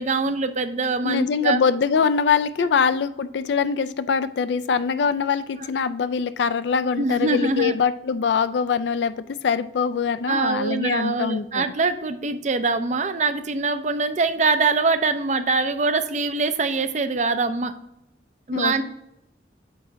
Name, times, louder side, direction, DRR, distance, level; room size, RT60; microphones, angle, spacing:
voice 1, 0.0-1.6 2.6-2.7 7.0-7.8 10.3-17.7 18.5-18.8, right 3 dB, 40° right, 10 dB, 0.5 m, -23 dB
voice 2, 1.0-11.6 18.5-18.8, left 6 dB, 70° left, 13 dB, 0.4 m, -23 dB
8.8 x 3.1 x 4.5 m, 0.83 s
head